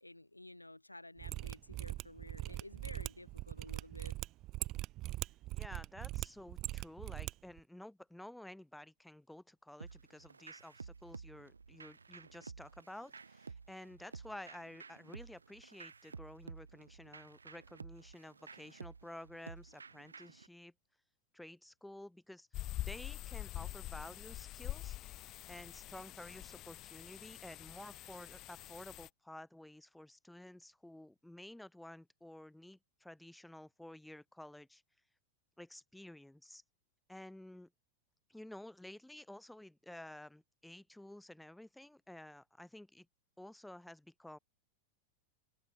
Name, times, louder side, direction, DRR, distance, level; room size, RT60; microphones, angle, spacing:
voice 1, 0.0-4.2, left 2 dB, 85° left, 1.4 m, -53 dB
Mechanisms, 1.2-7.3 7.6-7.7, right 17 dB, 35° right, 1.0 m, -41 dB
voice 2, 5.5-20.7 21.3-22.5 22.8-25.0 25.5-34.8 35.6-36.6 37.1-37.7 38.3-43.1 43.4-44.4, left 1 dB, 5° left, 5.4 m, -52 dB
sound 1, 9.8-20.5, right 5 dB, 75° right, 1.0 m, -52 dB
sound 2, 22.5-29.1, left 15 dB, 35° left, 1.3 m, -45 dB
open air
figure-of-eight pair, 90°, 0 cm